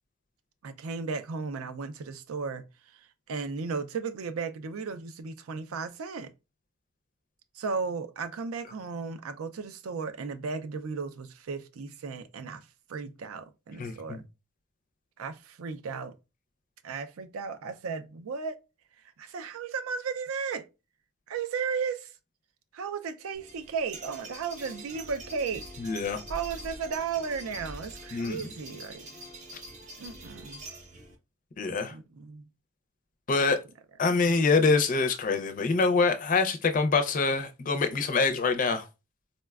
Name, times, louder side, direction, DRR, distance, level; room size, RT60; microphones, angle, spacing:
voice 1, 0.6-6.3 7.5-14.3 15.2-16.1 16.8-18.6 19.2-20.7 21.3-22.1 22.7-25.7 26.3-29.1 30.0-30.6 31.9-32.5, right 5 dB, 85° right, 0.4 m, -35 dB
voice 2, 13.8-14.2 25.8-26.2 28.1-28.5 31.6-31.9 33.3-33.6 34.0-38.9, left 4 dB, 40° left, 0.4 m, -25 dB
sound 1, 23.3-31.1, right 1 dB, 35° right, 0.5 m, -44 dB
4.0 x 2.1 x 2.3 m
head